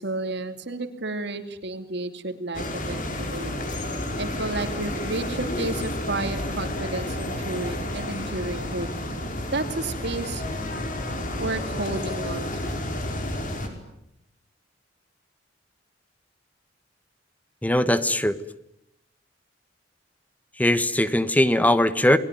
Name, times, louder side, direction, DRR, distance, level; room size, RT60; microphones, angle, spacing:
voice 1, 0.0-3.0 3.3-3.6 4.2-8.9 9.5-10.4 11.4-12.7, right 2 dB, 65° right, 8 dB, 2.8 m, -31 dB
sound 1, 2.5-13.7, left 1 dB, 45° left, 5.1 m, -31 dB
voice 2, 17.6-18.3 20.6-22.2, left 1 dB, 10° left, 13 dB, 1.3 m, -20 dB
29.5 x 21.5 x 9.3 m, 0.82 s
head